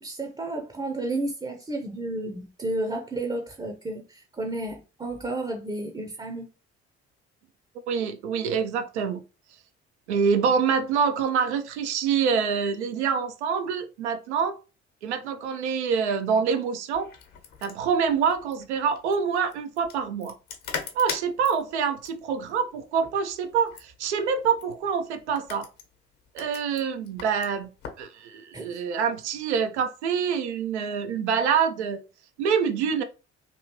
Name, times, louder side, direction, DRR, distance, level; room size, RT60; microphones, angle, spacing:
voice 1, 0.0-6.5 28.5-28.8, right 2 dB, 15° right, 0.6 m, -32 dB
voice 2, 7.9-9.2 10.1-14.6 15.0-17.1 17.6-20.3 20.9-25.7 26.3-27.7 28.0-32.0 32.4-33.0, right 6 dB, 80° right, 0.5 m, -26 dB
sound 1, 16.9-28.1, left 7 dB, 60° left, 1.1 m, -41 dB
3.0 x 2.7 x 2.9 m
figure-of-eight pair, 45°, 34 cm